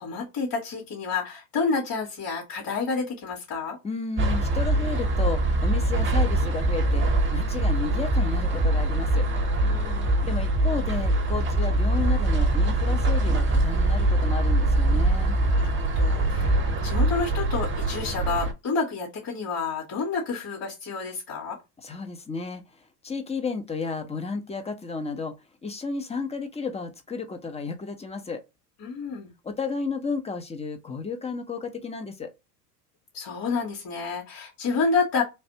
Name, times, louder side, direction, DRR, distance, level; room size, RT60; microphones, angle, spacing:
voice 1, 0.0-3.8 9.6-10.2 15.5-21.6 28.8-29.3 33.1-35.2, left 4 dB, 60° left, 2.0 m, -29 dB
voice 2, 3.8-7.1 7.3-9.3 10.2-15.3 21.8-22.6 23.0-25.3 25.6-28.4 29.4-32.3, left 4 dB, 15° left, 0.6 m, -32 dB
sound 1, 4.2-18.5, right 1 dB, 25° right, 0.8 m, -23 dB
3.3 x 2.5 x 2.7 m
hypercardioid pair, 85°, 49 cm